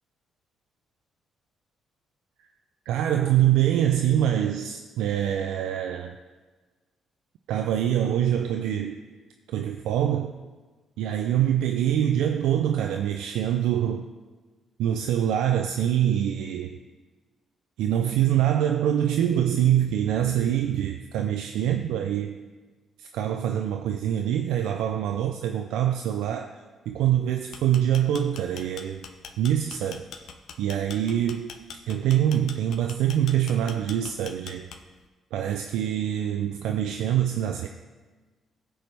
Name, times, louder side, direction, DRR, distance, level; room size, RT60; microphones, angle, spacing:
voice 1, 2.9-6.2 7.5-9.0 9.5-10.3 11.0-14.1 14.8-16.8 17.8-22.4 23.0-26.6 26.9-29.1 29.4-30.1 30.6-31.5 31.9-34.7 35.3-37.7, right 10 dB, 90° right, 5 dB, 0.3 m, -24 dB
sound 1, 27.4-35.0, left 7 dB, 70° left, 0.6 m, -42 dB
13.5 x 4.6 x 3.3 m, 1.3 s
cardioid pair, 90°, 0 cm